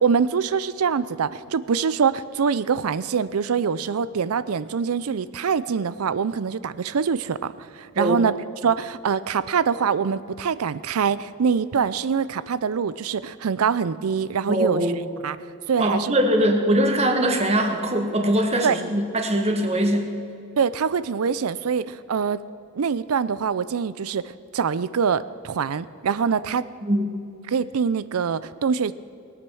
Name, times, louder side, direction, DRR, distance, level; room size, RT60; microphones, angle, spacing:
voice 1, 0.0-8.4 8.6-14.8 15.2-16.1 18.6-18.8 20.6-22.4 22.7-26.7 27.5-28.9, right 6 dB, 85° right, 16 dB, 0.5 m, -24 dB
voice 2, 8.0-8.3 14.5-15.2 15.8-20.1 26.8-27.1, right 1 dB, 30° right, 4 dB, 1.5 m, -22 dB
20.0 x 8.8 x 6.3 m, 2.4 s
head